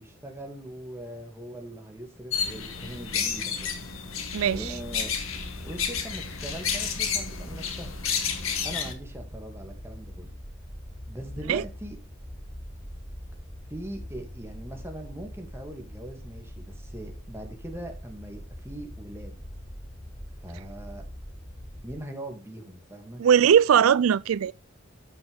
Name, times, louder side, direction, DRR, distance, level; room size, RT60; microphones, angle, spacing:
voice 1, 0.0-3.8 4.5-5.1 5.6-7.9 8.6-10.4 11.1-12.0 13.7-19.4 20.4-21.1 21.8-23.2, right 1 dB, 10° right, 2.4 m, -41 dB
sound 1, 2.3-8.9, left 6 dB, 80° left, 2.1 m, -31 dB
voice 2, 4.3-4.7 11.5-11.6 23.2-24.5, right 8 dB, 90° right, 0.4 m, -20 dB
sound 2, 4.4-22.0, equal, 5° left, 2.2 m, -43 dB
13.0 x 6.3 x 3.5 m
head